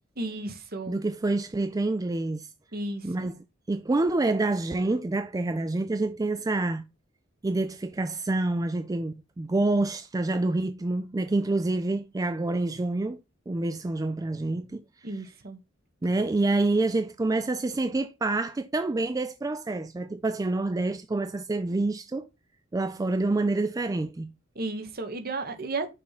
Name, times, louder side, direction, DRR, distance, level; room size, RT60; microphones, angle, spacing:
voice 1, 0.2-1.0 2.7-3.3 15.0-15.6 24.5-25.9, right 2 dB, 50° right, 1.2 m, -33 dB
voice 2, 0.9-2.5 3.0-3.3 3.7-6.8 7.4-13.2 13.5-14.8 16.0-22.3 22.7-24.3, right 2 dB, 20° right, 0.4 m, -27 dB
6.3 x 4.3 x 4.0 m
head